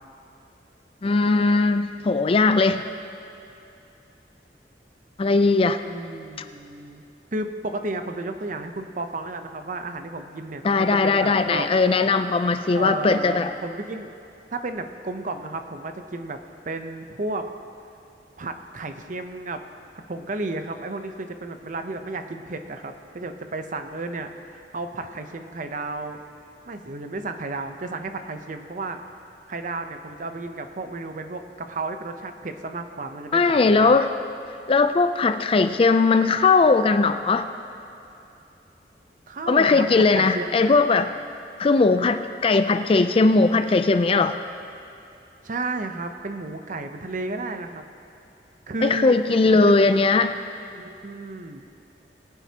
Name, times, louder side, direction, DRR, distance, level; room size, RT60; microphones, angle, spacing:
voice 1, 1.0-2.8 5.2-5.8 10.6-13.5 33.3-34.1 34.7-37.5 39.5-41.1 41.6-44.4 48.8-50.4, left 3 dB, 30° left, 9 dB, 0.4 m, -19 dB
voice 2, 5.8-7.0 7.3-11.7 12.7-14.1 14.5-16.4 16.6-17.5 18.4-19.6 20.1-26.2 26.7-29.0 29.5-34.0 39.3-40.8 45.4-47.8 48.7-49.2 49.5-49.8 50.7-51.6, right 2 dB, 50° right, 7 dB, 0.7 m, -33 dB
21.5 x 9.2 x 2.9 m, 2.8 s
head